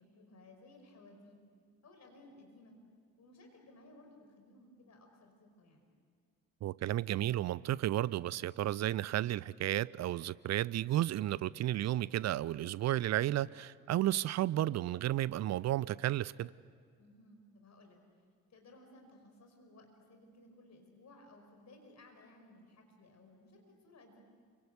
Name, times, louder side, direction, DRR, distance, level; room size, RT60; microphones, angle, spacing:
voice 1, 0.0-1.4 1.8-2.8 3.2-5.9 17.0-18.0 18.5-24.2, left 2 dB, 40° left, 5.2 m, -59 dB
voice 2, 6.6-16.5, right 13 dB, 40° right, 0.6 m, -33 dB
30.0 x 24.5 x 8.1 m
figure-of-eight pair, 50°, 42 cm